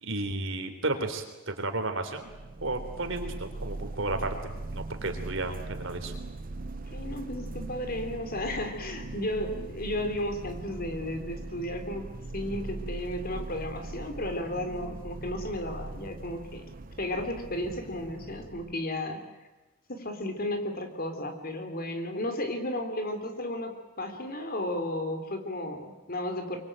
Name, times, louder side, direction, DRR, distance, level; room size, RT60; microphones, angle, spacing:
voice 1, 0.0-2.3 2.6-6.1, right 2 dB, 60° right, 6 dB, 3.6 m, -33 dB
sound 1, 2.2-18.8, right 2 dB, 40° right, 0.8 m, -40 dB
voice 2, 6.9-12.1 12.3-16.7 17.0-19.2 19.9-26.6, left 1 dB, 45° left, 7 dB, 3.5 m, -34 dB
24.5 x 23.5 x 9.0 m, 1.1 s
head